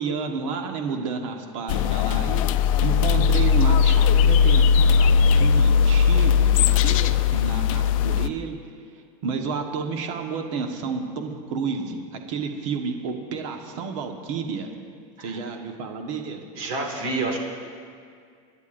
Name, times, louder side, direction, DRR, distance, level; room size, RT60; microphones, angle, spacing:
voice 1, 0.0-2.5 2.8-8.6 8.9-14.7 15.2-16.4, right 5 dB, 65° right, 4 dB, 1.3 m, -31 dB
sound 1, 1.7-8.3, left 6 dB, 80° left, 0.5 m, -18 dB
voice 2, 16.5-17.4, right 2 dB, 40° right, 0 dB, 2.1 m, -28 dB
26.5 x 10.5 x 2.6 m, 2.2 s
supercardioid pair, 175°, 17 cm